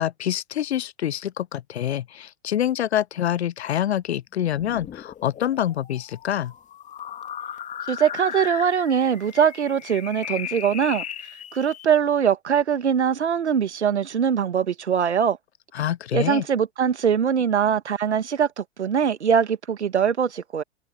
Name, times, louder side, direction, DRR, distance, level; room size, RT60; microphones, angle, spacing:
voice 1, 0.0-6.5 15.7-16.4, left 11 dB, 65° left, 0.7 m, -26 dB
sound 1, 4.4-11.9, left 9 dB, 20° left, 2.5 m, -37 dB
voice 2, 7.9-11.0 11.5-15.4 16.1-20.6, right 7 dB, 75° right, 1.7 m, -22 dB
figure-of-eight pair, 105°, 34 cm